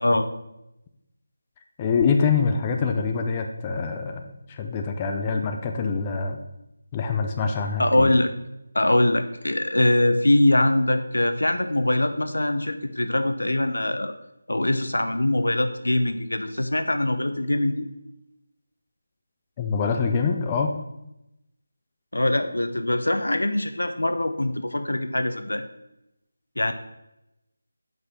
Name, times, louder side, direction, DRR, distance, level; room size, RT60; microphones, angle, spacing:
voice 1, 1.8-6.4 6.9-8.2 19.6-20.8, left 5 dB, 20° left, 4 dB, 0.6 m, -25 dB
voice 2, 7.8-8.3 8.7-14.1 14.5-17.9 22.1-25.6 26.6-26.7, left 1 dB, 85° left, 8 dB, 0.9 m, -23 dB
5.9 x 5.3 x 6.2 m, 0.88 s
figure-of-eight pair, 165°, 0 cm